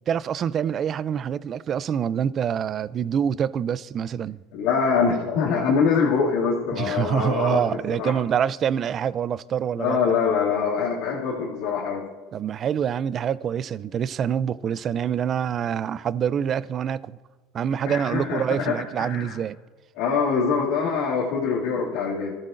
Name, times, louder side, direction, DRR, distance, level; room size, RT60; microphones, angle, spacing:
voice 1, 0.1-4.4 6.7-10.0 12.3-17.2 17.5-19.6, right 8 dB, 35° right, 0.4 m, -26 dB
voice 2, 4.5-7.6 8.0-8.1 9.8-12.1 17.8-19.4 20.0-22.4, left 5 dB, 75° left, 2.3 m, -24 dB
26.5 x 14.0 x 2.6 m
supercardioid pair, 130°, 0 cm